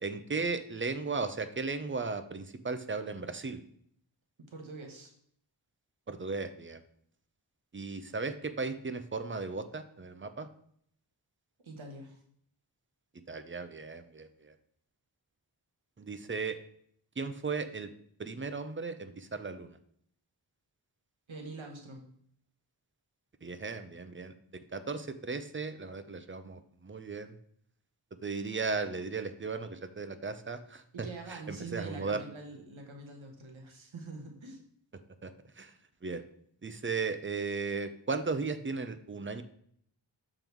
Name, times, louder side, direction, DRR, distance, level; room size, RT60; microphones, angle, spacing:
voice 1, 0.0-3.6 6.1-6.8 7.7-10.5 13.3-14.5 16.0-16.6 17.2-17.9 18.2-19.8 23.4-24.3 24.7-27.4 28.2-32.2 35.2-35.7 36.0-36.2 36.6-39.4, right 4 dB, 25° right, 10 dB, 0.5 m, -36 dB
voice 2, 4.4-5.1 11.6-12.2 21.3-22.0 30.9-34.6, right 3 dB, 90° right, 2 dB, 1.2 m, -45 dB
6.8 x 3.8 x 4.5 m, 0.66 s
wide cardioid pair, 60°, 46 cm